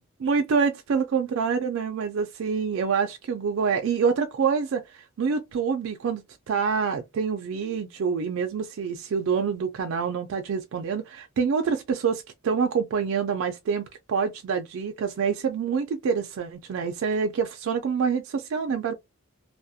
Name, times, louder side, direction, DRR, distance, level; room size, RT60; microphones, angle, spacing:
voice 1, 0.2-18.9, right 6 dB, 70° right, 0.3 m, -26 dB
2.3 x 2.0 x 2.6 m
head